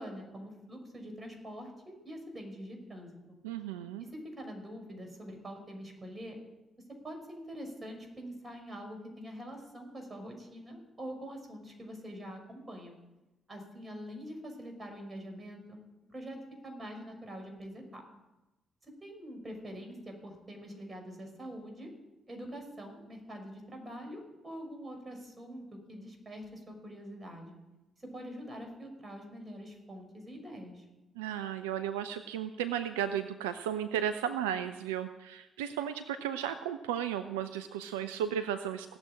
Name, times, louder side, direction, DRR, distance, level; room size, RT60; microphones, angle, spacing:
voice 1, 0.0-3.4 4.0-6.4 7.0-13.0 13.5-15.8 16.1-18.0 18.8-21.9 22.3-27.5 28.0-30.9, equal, 25° right, 3 dB, 6.0 m, -45 dB
voice 2, 3.4-4.0 31.2-39.0, right 9 dB, 75° right, 11 dB, 0.5 m, -34 dB
17.0 x 7.8 x 9.9 m, 1.0 s
figure-of-eight pair, 40°, 0 cm